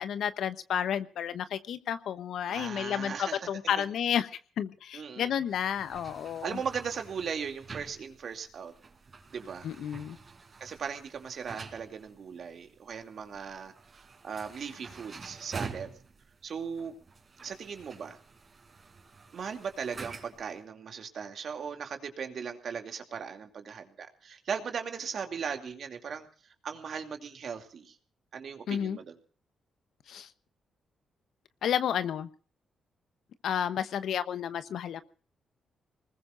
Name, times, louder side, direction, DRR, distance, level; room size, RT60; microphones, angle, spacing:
voice 1, 0.0-6.6 9.6-10.2 28.7-29.0 30.1-30.3 31.6-32.3 33.4-35.0, left 9 dB, 75° left, 12 dB, 1.0 m, -31 dB
voice 2, 2.5-3.4 3.6-3.8 4.9-5.3 6.4-8.7 9.3-9.7 10.6-15.9 16.4-16.9 17.4-18.2 19.3-26.3 26.6-27.9 28.3-29.1, right 6 dB, 65° right, 5 dB, 2.7 m, -38 dB
sound 1, 5.5-20.5, right 4 dB, 45° right, 4.6 m, -48 dB
25.0 x 20.0 x 2.6 m, 0.43 s
supercardioid pair, 65°, 0 cm